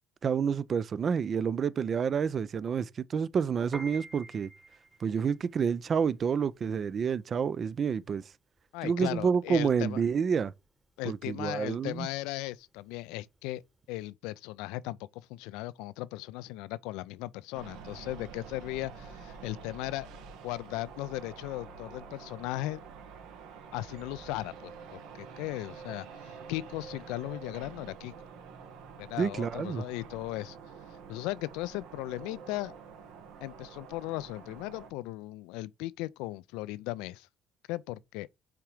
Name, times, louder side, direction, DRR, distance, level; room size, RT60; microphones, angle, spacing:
voice 1, 0.2-4.5 5.0-8.2 8.8-10.5 11.0-12.1 29.2-29.8, right 6 dB, 45° right, 0.5 m, -29 dB
Piano, 3.6-14.0, right 2 dB, 20° right, 1.3 m, -50 dB
voice 2, 8.7-10.0 11.0-13.6 13.9-20.1 20.4-22.8 23.7-28.1 29.0-30.6 31.1-32.7 33.4-37.3 37.7-38.3, left 17 dB, 75° left, 0.3 m, -37 dB
sound 1, 17.5-34.9, right 5 dB, 75° right, 1.4 m, -48 dB
5.8 x 3.8 x 4.9 m
hypercardioid pair, 65°, 0 cm